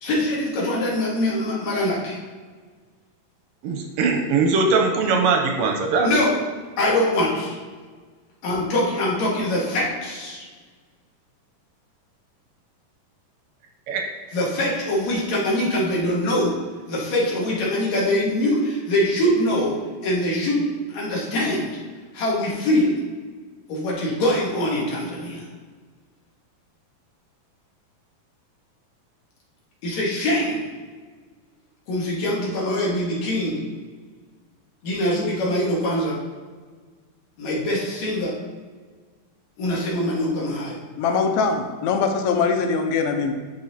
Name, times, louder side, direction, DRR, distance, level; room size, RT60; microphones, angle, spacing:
voice 1, 0.0-2.2 6.0-6.3 6.8-7.6 8.4-10.5 14.3-16.5 16.9-19.7 20.0-20.7 20.9-21.8 22.1-23.0 23.7-25.4 29.8-30.7 31.9-33.6 34.8-36.2 37.4-38.4 39.6-40.8, left 1 dB, 60° left, -5 dB, 2.3 m, -23 dB
voice 2, 3.6-6.1 13.9-14.0, right 4 dB, 80° right, 2 dB, 2.2 m, -20 dB
voice 3, 41.0-43.3, left 5 dB, 90° left, 5 dB, 2.6 m, -22 dB
10.5 x 4.6 x 2.8 m, 1.5 s
omnidirectional pair, 4.2 m